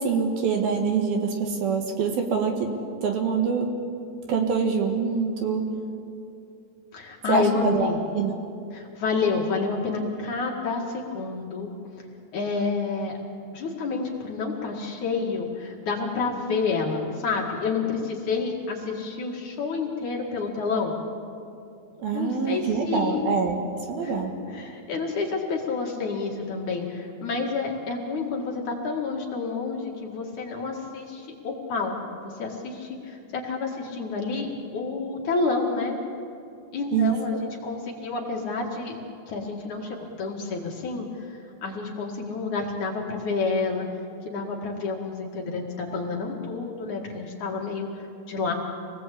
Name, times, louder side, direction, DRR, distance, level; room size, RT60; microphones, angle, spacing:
voice 1, 0.0-2.7 3.0-3.7 4.3-5.6 7.3-7.9 8.1-8.4 22.0-23.6 23.9-24.3 36.9-37.1, right 5 dB, 65° right, 3 dB, 3.2 m, -24 dB
voice 2, 6.9-8.0 8.7-11.7 12.3-13.2 13.5-21.0 22.1-23.3 24.0-24.1 24.5-36.0 36.7-39.0 39.3-43.9 44.2-48.5, left 4 dB, 50° left, -1 dB, 3.1 m, -29 dB
27.0 x 19.0 x 8.4 m, 2.6 s
omnidirectional pair, 5.0 m